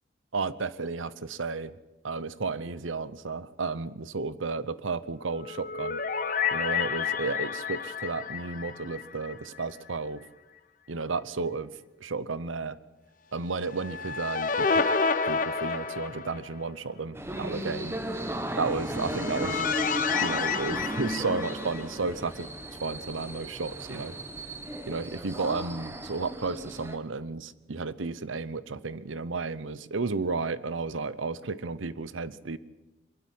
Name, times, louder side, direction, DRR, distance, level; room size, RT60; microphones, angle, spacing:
voice 1, 0.3-1.7 2.0-6.0 6.5-10.2 10.9-12.8 13.3-14.9 15.2-18.0 18.6-19.7 20.2-22.5 22.8-24.1 24.9-32.6, right 4 dB, 90° right, 17 dB, 0.8 m, -33 dB
sound 1, 5.4-9.7 9.9-10.0 13.6-16.7 18.7-22.1, left 5 dB, 45° left, 1.0 m, -30 dB
sound 2, 17.1-27.0, right 1 dB, 15° right, 1.2 m, -35 dB
23.0 x 12.0 x 9.5 m, 1.1 s
head